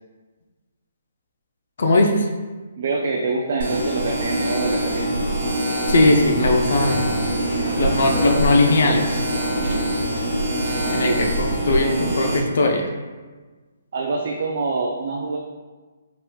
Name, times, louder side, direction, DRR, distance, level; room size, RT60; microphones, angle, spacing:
voice 1, 1.8-2.3 5.9-7.1 7.8-9.2 10.9-12.9, left 2 dB, 55° left, 2 dB, 0.5 m, -19 dB
voice 2, 2.8-5.1 10.8-11.3 13.9-15.4, right 3 dB, 45° right, 0 dB, 0.4 m, -25 dB
sound 1, 3.6-12.4, right 1 dB, 60° right, 1.2 m, -24 dB
Laughter, 6.0-11.8, equal, 5° right, 1.2 m, -33 dB
4.1 x 3.5 x 2.3 m, 1.3 s
hypercardioid pair, 175°, 0 cm